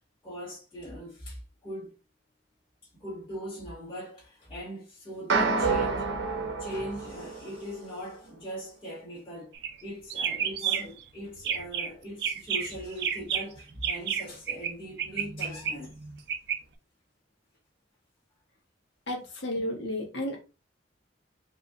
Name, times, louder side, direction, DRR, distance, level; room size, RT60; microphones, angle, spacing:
voice 1, 0.2-1.9 3.0-6.1 6.6-9.5 9.8-16.0, equal, 30° left, 1.9 m, -40 dB
sound 1, 5.3-7.8, right 4 dB, 90° right, 1.0 m, -28 dB
sound 2, 9.5-9.8 10.1-11.0 11.4-11.9 12.2-14.7 15.0-16.6, right 7 dB, 65° right, 0.6 m, -31 dB
voice 2, 19.1-20.4, left 1 dB, 75° left, 1.4 m, -32 dB
4.7 x 2.9 x 2.5 m
head